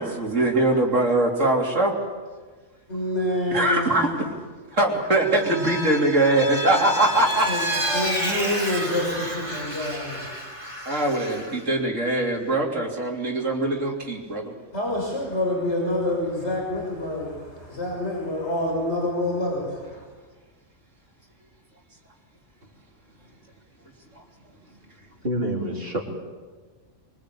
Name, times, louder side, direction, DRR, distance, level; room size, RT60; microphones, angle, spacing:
voice 1, 0.0-2.0 3.5-4.1 4.7-7.5 10.9-14.5, right 2 dB, 80° right, 0 dB, 3.7 m, -22 dB
voice 2, 2.9-4.2 7.5-10.3 14.7-20.0, left 1 dB, 60° left, -1 dB, 6.2 m, -27 dB
Vehicle, 5.2-11.6, right 1 dB, 25° right, 4.8 m, -30 dB
voice 3, 25.2-26.0, right 1 dB, 50° right, 0 dB, 4.4 m, -28 dB
25.0 x 24.0 x 8.6 m, 1.4 s
omnidirectional pair, 1.3 m